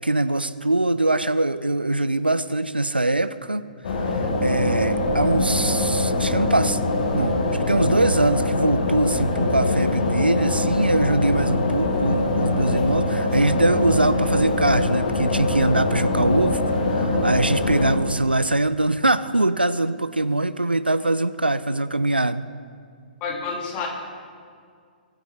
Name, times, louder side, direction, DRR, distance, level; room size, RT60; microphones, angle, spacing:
voice 1, 0.0-3.7 4.4-6.8 7.1-7.4 7.7-16.6 16.9-22.5, right 2 dB, 85° right, 14 dB, 0.5 m, -22 dB
sound 1, 3.8-18.0, left 2 dB, 50° left, 1.6 m, -23 dB
voice 2, 23.2-23.9, left 5 dB, 25° left, 1 dB, 2.0 m, -29 dB
23.0 x 9.0 x 3.3 m, 2.2 s
figure-of-eight pair, 120°, 5 cm